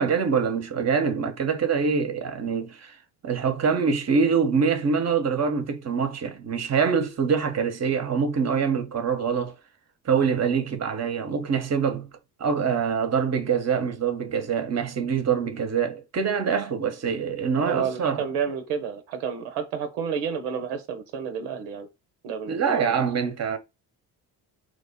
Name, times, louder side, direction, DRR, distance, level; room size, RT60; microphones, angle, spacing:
voice 1, 0.0-3.0 3.2-9.5 10.0-12.1 12.4-18.2 22.5-23.6, right 6 dB, 35° right, 0.8 m, -24 dB
voice 2, 17.6-21.9 22.2-23.0, right 7 dB, 85° right, 0.7 m, -30 dB
3.1 x 2.1 x 4.0 m
hypercardioid pair, 50°, 48 cm